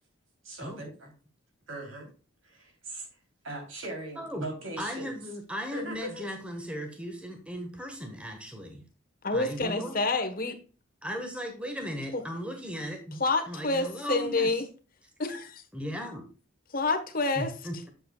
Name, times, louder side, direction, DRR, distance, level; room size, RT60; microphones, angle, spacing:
voice 1, 0.4-0.9 1.7-2.1 2.4-3.1 3.4-5.1 5.7-6.2, right 1 dB, 70° right, 2 dB, 3.3 m, -39 dB
voice 2, 4.2-4.5 4.8-8.9 9.3-10.0 11.0-14.6 15.7-16.3 17.3-17.9, equal, 5° right, 4 dB, 1.4 m, -37 dB
voice 3, 9.2-10.6 13.2-14.7 15.2-15.6 16.7-17.5, left 3 dB, 45° left, 6 dB, 1.2 m, -28 dB
7.8 x 7.7 x 2.3 m, 0.36 s
head